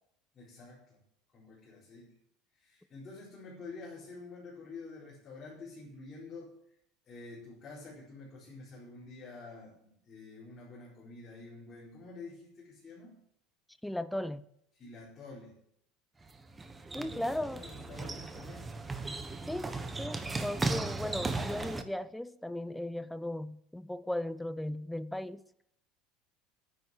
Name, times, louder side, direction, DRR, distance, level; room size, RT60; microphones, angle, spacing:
voice 1, 0.3-1.0 1.3-2.1 2.5-6.5 7.0-13.2 14.8-15.6 16.9-18.7, left 3 dB, 25° left, 4.5 m, -48 dB
voice 2, 13.8-14.4 16.9-17.6 19.5-25.4, left 1 dB, 5° left, 0.6 m, -37 dB
sound 1, 16.2-21.8, right 3 dB, 15° right, 1.0 m, -37 dB
9.9 x 9.3 x 7.5 m
supercardioid pair, 140°, 0 cm